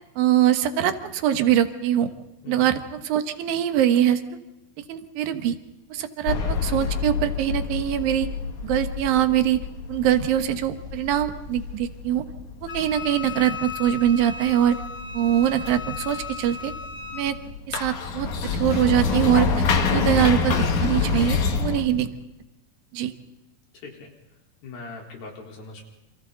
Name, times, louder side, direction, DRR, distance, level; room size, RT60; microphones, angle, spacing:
voice 1, 0.2-2.1 2.5-4.4 4.9-5.6 5.9-8.3 8.6-9.6 9.9-12.2 12.6-14.8 15.1-16.7 17.1-17.4 17.7-22.1 22.9-23.1, right 11 dB, 75° right, 8 dB, 3.0 m, -23 dB
sound 1, 6.3-21.8, left 5 dB, 60° left, 3.0 m, -27 dB
Wind instrument woodwind instrument, 12.7-17.3, left 4 dB, 35° left, 3.5 m, -36 dB
voice 2, 23.7-24.2 24.6-25.8, left 3 dB, 80° left, -1 dB, 5.8 m, -40 dB
28.5 x 27.5 x 4.0 m, 0.95 s
omnidirectional pair, 4.2 m